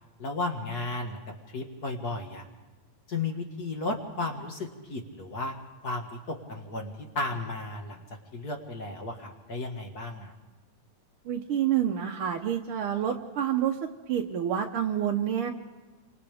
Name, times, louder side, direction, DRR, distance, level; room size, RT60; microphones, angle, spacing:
voice 1, 0.2-1.2 1.5-2.5 3.1-5.5 5.8-8.0 8.3-10.3, left 2 dB, 40° left, 2 dB, 1.9 m, -34 dB
voice 2, 11.2-15.5, right 9 dB, 65° right, 2 dB, 1.4 m, -28 dB
29.0 x 26.0 x 3.5 m, 1.2 s
omnidirectional pair, 3.3 m